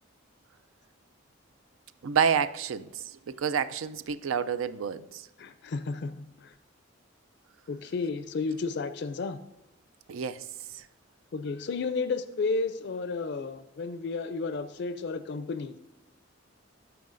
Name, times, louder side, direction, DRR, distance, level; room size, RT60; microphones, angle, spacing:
voice 1, 2.0-5.2 10.1-10.4, right 7 dB, 90° right, 0.4 m, -29 dB
voice 2, 5.4-6.5 7.7-9.4 11.3-15.8, left 4 dB, 55° left, 0.4 m, -32 dB
12.5 x 5.6 x 2.5 m
head